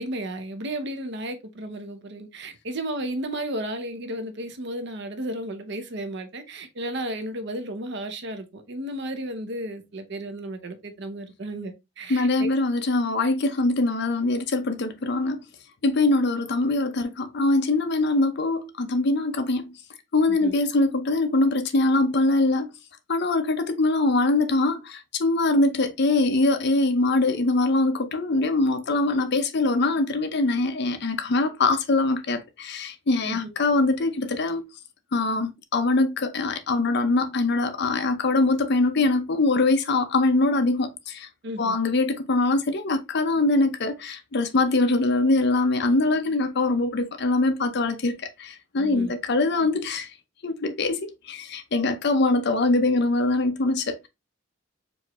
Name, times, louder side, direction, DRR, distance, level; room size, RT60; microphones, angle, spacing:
voice 1, 0.0-12.5 20.3-20.5 33.3-33.5 41.4-41.8 48.8-49.1, right 1 dB, 60° right, 0.8 m, -33 dB
voice 2, 12.1-15.5 15.8-19.7 20.1-22.7 23.1-34.6 35.1-41.3 41.6-50.1 50.4-54.1, left 2 dB, 60° left, 0.6 m, -23 dB
4.6 x 2.7 x 3.0 m
head